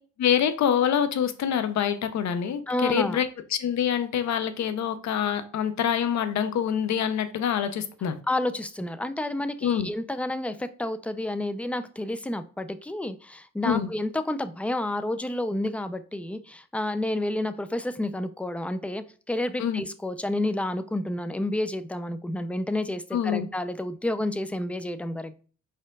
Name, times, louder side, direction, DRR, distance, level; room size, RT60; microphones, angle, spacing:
voice 1, 0.2-3.3 3.6-8.2 9.6-9.9 13.6-13.9 19.6-19.8 23.1-23.5, left 8 dB, 65° left, 0.8 m, -25 dB
voice 2, 2.7-3.2 8.3-25.4, left 1 dB, 5° left, 0.4 m, -30 dB
5.0 x 4.4 x 2.3 m
cardioid pair, 90°, 30 cm